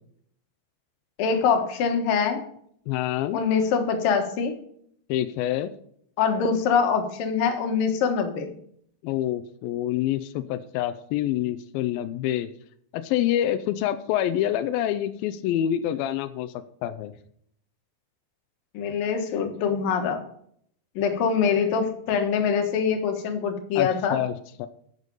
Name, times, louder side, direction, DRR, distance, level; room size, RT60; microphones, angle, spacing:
voice 1, 1.2-2.4 3.3-4.6 6.2-8.5 18.7-20.2 21.0-24.2, left 6 dB, 65° left, 5 dB, 2.8 m, -24 dB
voice 2, 2.9-3.4 5.1-5.7 9.0-12.5 12.9-16.5 16.8-17.1 23.8-24.7, left 12 dB, 85° left, 11 dB, 2.1 m, -27 dB
11.5 x 8.2 x 5.4 m, 0.66 s
omnidirectional pair, 4.9 m